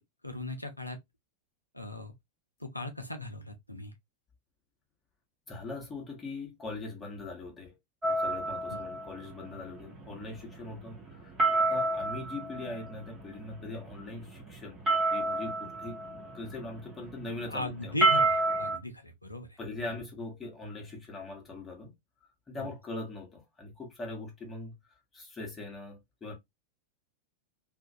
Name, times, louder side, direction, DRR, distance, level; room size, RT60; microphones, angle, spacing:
voice 1, 0.2-1.0 1.7-2.1 2.6-3.9 8.7-8.8 17.5-19.6 22.6-22.7, left 1 dB, 85° left, 0.5 m, -38 dB
voice 2, 5.5-7.7 8.2-14.8 15.1-16.0 16.3-18.1 19.6-21.9 22.5-26.4, left 2 dB, 15° left, 0.9 m, -41 dB
sound 1, 8.0-18.8, right 2 dB, 20° right, 0.9 m, -31 dB
2.3 x 2.1 x 2.6 m
figure-of-eight pair, 90°, 0 cm